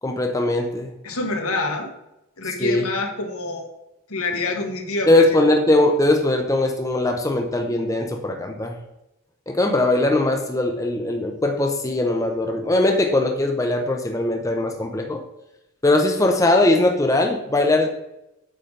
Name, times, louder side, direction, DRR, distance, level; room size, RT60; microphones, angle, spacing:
voice 1, 0.0-0.9 2.6-2.8 5.1-8.7 9.5-15.2 15.8-17.9, left 2 dB, 15° left, 3 dB, 0.6 m, -20 dB
voice 2, 1.0-1.9 2.4-3.7 4.1-5.3, left 2 dB, 75° left, 3 dB, 1.4 m, -26 dB
8.5 x 3.9 x 5.1 m, 0.92 s
head